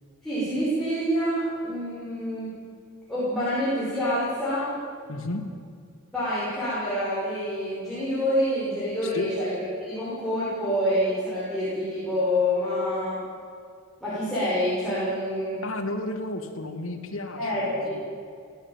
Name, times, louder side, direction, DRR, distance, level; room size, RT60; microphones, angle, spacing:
voice 1, 0.2-2.6 3.1-4.7 6.1-13.2 14.0-15.6 17.4-17.9, equal, 5° left, -12 dB, 6.4 m, -27 dB
voice 2, 5.1-5.5 9.0-9.3 15.6-17.9, left 2 dB, 85° left, 4 dB, 2.6 m, -33 dB
17.0 x 17.0 x 9.2 m, 2.3 s
head